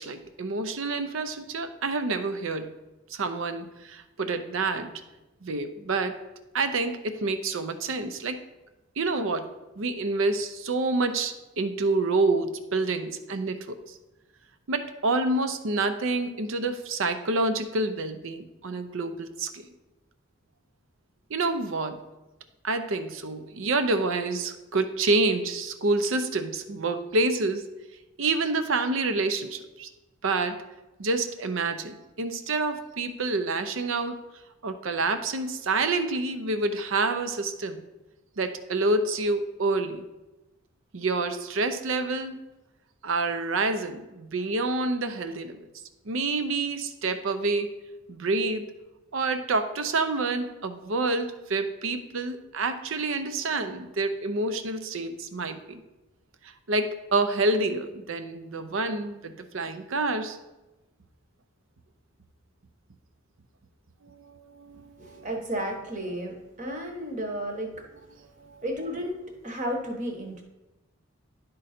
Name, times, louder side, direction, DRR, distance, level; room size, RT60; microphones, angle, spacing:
voice 1, 0.0-2.7 3.1-4.9 5.4-6.2 6.5-8.4 9.0-9.5 9.8-13.9 14.7-19.6 21.3-22.0 22.6-27.7 28.2-29.9 30.2-30.6 31.0-34.2 34.6-37.8 38.4-40.0 40.9-42.4 43.0-45.6 46.1-47.8 48.1-48.7 49.1-55.8 56.7-60.4 64.0-65.3 68.4-68.6, right 3 dB, 65° right, 9 dB, 0.6 m, -28 dB
voice 2, 65.0-67.8 68.6-70.4, equal, 35° right, 2 dB, 1.1 m, -33 dB
11.5 x 3.8 x 4.2 m, 1.0 s
head